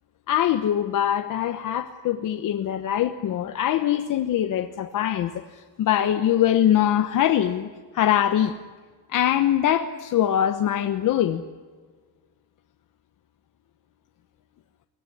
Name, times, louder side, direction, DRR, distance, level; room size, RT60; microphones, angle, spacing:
voice 1, 0.3-5.4 5.8-7.7 7.9-8.5 9.1-11.4, left 11 dB, 55° left, 7 dB, 1.1 m, -22 dB
23.5 x 17.5 x 9.9 m, 1.5 s
cardioid pair, 180°, 38 cm